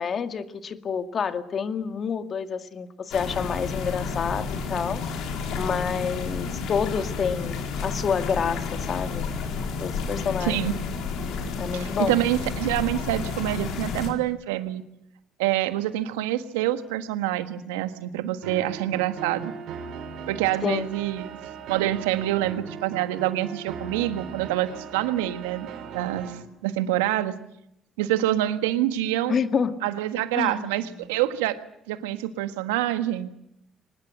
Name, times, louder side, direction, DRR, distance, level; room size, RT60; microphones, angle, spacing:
voice 1, 0.0-5.0 5.5-9.3 9.8-10.7 11.6-12.2 20.6-20.9 29.3-29.8 30.3-30.9, left 6 dB, 50° left, 8 dB, 2.0 m, -28 dB
sound 1, 3.1-14.1, left 5 dB, 70° left, 4.4 m, -31 dB
voice 2, 10.4-10.7 11.7-14.8 15.4-19.5 20.3-21.3 21.7-25.7 25.9-27.3 28.0-29.3 29.8-31.6 31.9-33.3, right 14 dB, 85° right, 10 dB, 1.5 m, -26 dB
sound 2, 18.4-26.4, right 6 dB, 70° right, 4.0 m, -38 dB
24.0 x 20.0 x 7.8 m, 0.81 s
hypercardioid pair, 55°, 0 cm